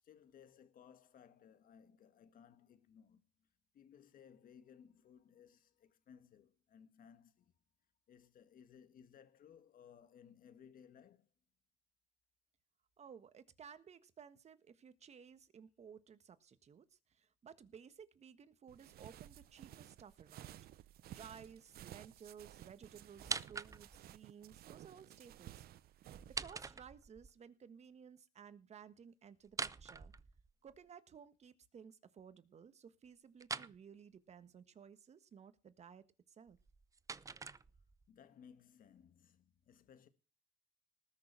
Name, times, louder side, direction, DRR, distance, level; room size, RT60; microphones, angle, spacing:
voice 1, 0.0-3.5 3.7-7.5 8.1-11.3 38.1-40.1, left 8 dB, 55° left, 1.9 m, -61 dB
voice 2, 13.0-20.6 21.1-25.7 26.1-30.1 30.6-36.6, right 7 dB, 40° right, 1.5 m, -57 dB
sound 1, 18.7-26.4, right 13 dB, 65° right, 0.8 m, -55 dB
sound 2, 23.2-24.1 26.1-27.3 29.4-30.8 33.4-33.8 36.5-38.1, right 4 dB, 20° right, 0.6 m, -44 dB
19.5 x 6.6 x 6.0 m
cardioid pair, 110°, 17 cm